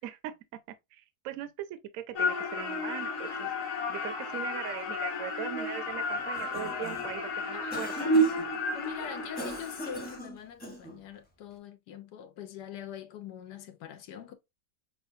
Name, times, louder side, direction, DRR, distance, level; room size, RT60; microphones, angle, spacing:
voice 1, 0.0-0.4 0.9-8.1, right 11 dB, 70° right, 0.8 m, -40 dB
sound 1, 2.1-10.2, equal, 55° left, 1.2 m, -31 dB
Cough, 6.2-7.2 7.7-8.5 9.4-11.0, equal, 10° left, 0.6 m, -41 dB
voice 2, 7.5-8.2 8.7-14.3, left 9 dB, 90° left, 1.3 m, -43 dB
5.6 x 2.3 x 2.6 m
omnidirectional pair, 1.7 m